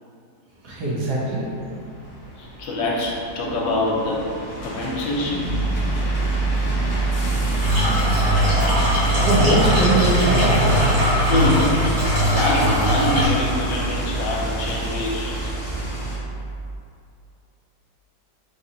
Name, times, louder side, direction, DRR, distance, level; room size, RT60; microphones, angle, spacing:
voice 1, 0.6-1.4 9.2-11.0, right 2 dB, 65° right, -7 dB, 1.2 m, -21 dB
sound 1, 1.0-16.2, equal, 55° left, 0.8 m, -30 dB
voice 2, 2.4-5.7 11.3-15.5, left 2 dB, 85° left, -4 dB, 1.3 m, -25 dB
Piano, 5.4-16.8, right 3 dB, 25° right, 0.4 m, -26 dB
sound 2, 7.6-13.3, equal, 90° right, 1.7 m, -21 dB
3.9 x 2.6 x 2.7 m, 2.5 s
omnidirectional pair, 2.0 m